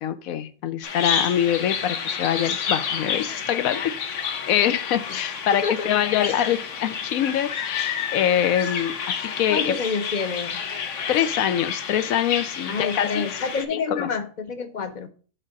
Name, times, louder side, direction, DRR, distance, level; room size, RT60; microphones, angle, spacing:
voice 1, 0.0-9.8 11.1-13.3 13.7-14.1, left 10 dB, 85° left, 1.0 m, -24 dB
Bird vocalization bird call bird song, 0.8-13.6, left 7 dB, 65° left, 1.1 m, -30 dB
voice 2, 5.6-6.3 9.5-10.6 12.7-15.1, left 5 dB, 45° left, 0.6 m, -28 dB
6.5 x 3.7 x 6.3 m
omnidirectional pair, 1.4 m